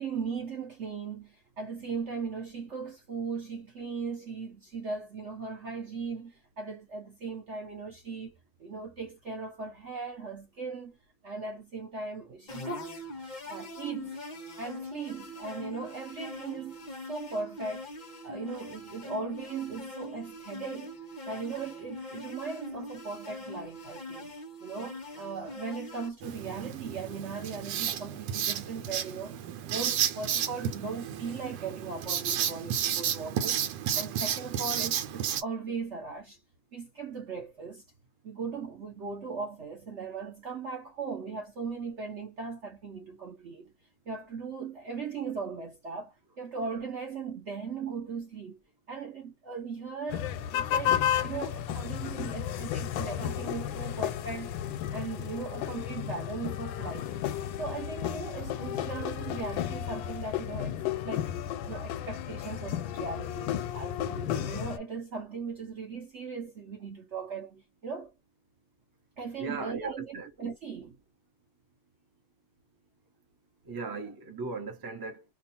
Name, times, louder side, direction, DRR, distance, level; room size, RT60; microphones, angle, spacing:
voice 1, 0.0-11.0 11.2-13.0 13.4-14.2 14.6-16.8 17.1-17.9 18.2-21.0 21.3-33.6 33.9-36.4 36.7-37.8 38.2-43.7 44.1-48.6 48.9-54.5 54.9-57.1 57.6-61.4 61.6-68.1 69.2-71.0, right 4 dB, 55° right, 0.8 m, -38 dB
sound 1, 12.5-26.1, left 1 dB, 55° left, 0.4 m, -42 dB
Writing, 26.2-35.4, right 9 dB, 80° right, 1.3 m, -32 dB
sound 2, 50.1-64.8, left 10 dB, 90° left, 1.3 m, -33 dB
voice 2, 69.4-70.3 73.6-75.2, right 3 dB, 30° right, 0.4 m, -38 dB
3.0 x 2.4 x 4.2 m
omnidirectional pair, 2.1 m